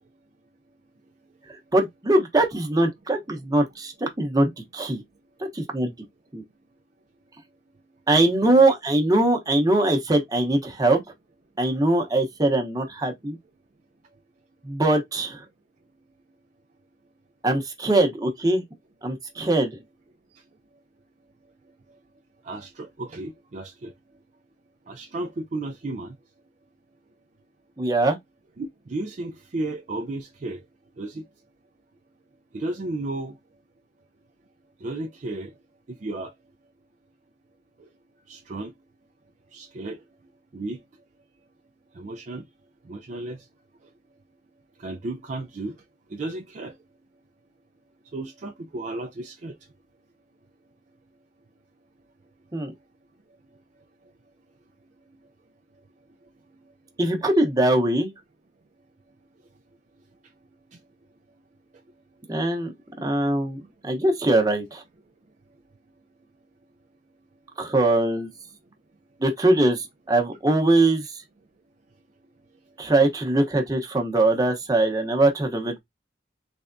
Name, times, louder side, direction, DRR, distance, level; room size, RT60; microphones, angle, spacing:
voice 1, 1.7-5.0 5.5-5.9 6.3-6.4 8.1-11.0 11.6-13.4 14.6-15.4 17.4-18.6 19.0-19.8 27.8-28.2 52.5-52.7 57.0-58.1 62.3-62.7 63.0-64.8 67.6-68.3 69.2-71.2 72.8-75.8, right 2 dB, 20° right, 0.9 m, -22 dB
voice 2, 22.4-23.9 24.9-26.2 28.6-30.6 31.0-31.2 32.5-33.4 34.8-35.5 35.9-36.3 37.8-37.9 38.3-38.7 39.5-40.0 40.5-40.8 41.9-42.4 42.9-43.4 44.8-45.8 46.1-46.8 48.1-49.6, right 2 dB, 45° right, 0.4 m, -33 dB
3.4 x 3.2 x 2.6 m
head